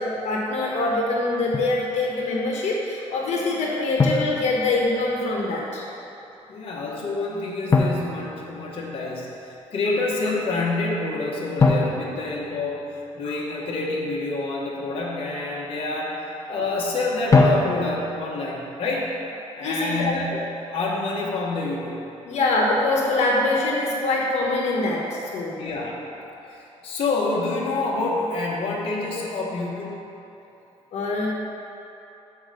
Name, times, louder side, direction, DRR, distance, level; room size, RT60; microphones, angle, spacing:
voice 1, 0.0-5.9 13.2-13.3 19.6-20.1 22.2-25.5 30.9-31.3, left 2 dB, 70° left, -2 dB, 1.2 m, -24 dB
Drum, 1.5-1.8 4.0-5.1 7.7-9.1 11.6-13.3 17.3-18.3, left 3 dB, 25° left, 0.6 m, -23 dB
voice 2, 6.5-16.2 16.5-19.1 19.6-20.3 20.7-22.0 25.6-26.1 26.5-30.0, left 3 dB, 50° left, -4 dB, 1.2 m, -27 dB
7.2 x 4.6 x 6.5 m, 3.0 s
cardioid pair, 130°, 12 cm